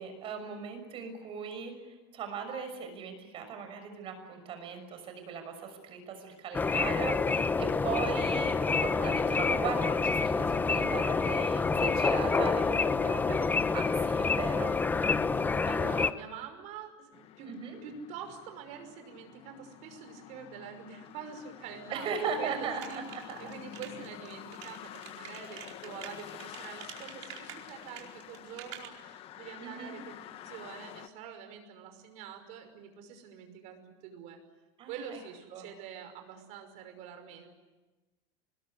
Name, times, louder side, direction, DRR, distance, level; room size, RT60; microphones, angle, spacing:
voice 1, 0.0-13.5 13.7-14.8 17.4-17.8 21.9-23.4 29.6-29.9 34.8-35.2 35.5-35.7, right 6 dB, 40° right, 6 dB, 6.2 m, -38 dB
sound 1, 6.5-16.1, left 4 dB, 10° left, 0.8 m, -28 dB
voice 2, 15.7-17.5 17.8-30.2 30.4-34.4 34.9-37.5, right 7 dB, 55° right, 6 dB, 5.7 m, -45 dB
sound 2, 17.1-31.1, left 12 dB, 40° left, 1.2 m, -48 dB
sound 3, 22.8-28.9, right 12 dB, 85° right, 4.7 m, -47 dB
25.0 x 21.0 x 9.9 m, 1.2 s
supercardioid pair, 145°, 15 cm